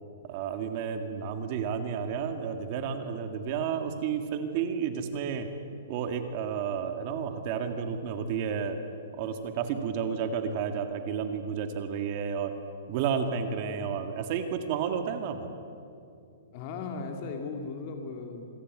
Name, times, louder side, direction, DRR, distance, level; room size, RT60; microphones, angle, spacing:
voice 1, 0.3-5.5 5.9-8.8 9.1-12.5 12.9-15.5, right 7 dB, 35° right, 7 dB, 2.0 m, -31 dB
voice 2, 16.5-18.5, left 4 dB, 35° left, 3 dB, 2.4 m, -37 dB
26.5 x 23.5 x 9.6 m, 2.5 s
hypercardioid pair, 170°, 0 cm